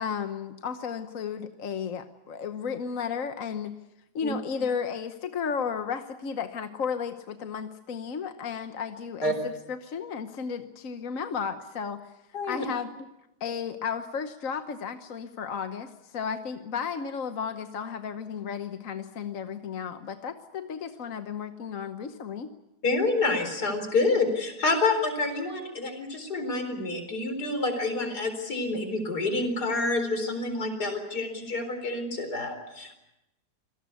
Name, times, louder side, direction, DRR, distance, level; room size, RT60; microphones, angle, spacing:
voice 1, 0.0-3.7 4.1-12.1 12.5-12.9 13.4-22.5, left 6 dB, 55° left, 8 dB, 1.4 m, -33 dB
voice 2, 12.3-12.6 22.8-33.0, left 3 dB, 75° left, 7 dB, 4.8 m, -28 dB
26.0 x 18.5 x 8.3 m, 0.91 s
omnidirectional pair, 1.7 m